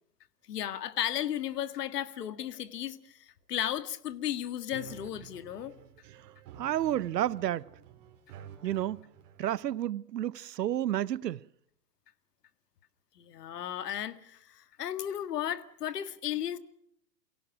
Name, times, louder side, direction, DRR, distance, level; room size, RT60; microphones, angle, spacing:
voice 1, 0.5-5.7 13.2-16.6, left 11 dB, 75° left, 1.9 m, -35 dB
sound 1, 4.7-9.7, right 8 dB, 50° right, 4.3 m, -51 dB
voice 2, 6.6-7.7 8.6-9.0 9.4-11.4, right 12 dB, 90° right, 0.8 m, -31 dB
28.5 x 17.5 x 6.1 m
hypercardioid pair, 130°, 48 cm